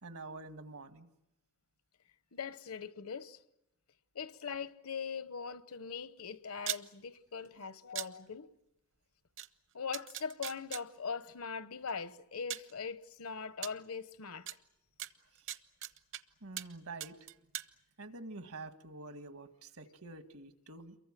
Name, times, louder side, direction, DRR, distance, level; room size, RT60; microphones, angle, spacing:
voice 1, 0.0-1.1 7.6-7.7 15.3-15.6 16.4-17.2 18.0-21.0, right 3 dB, 80° right, 1.8 m, -47 dB
voice 2, 2.3-3.4 4.1-8.5 9.7-14.5, left 6 dB, 75° left, 1.0 m, -41 dB
sound 1, 6.6-6.8 7.9-8.1 9.4-9.5 9.9-10.8 11.9-12.0 12.5-12.7 13.6-13.7 14.5-14.6 15.0-16.2 16.6-16.7 17.0-17.7, right 12 dB, 60° right, 0.9 m, -39 dB
28.5 x 23.5 x 7.5 m
head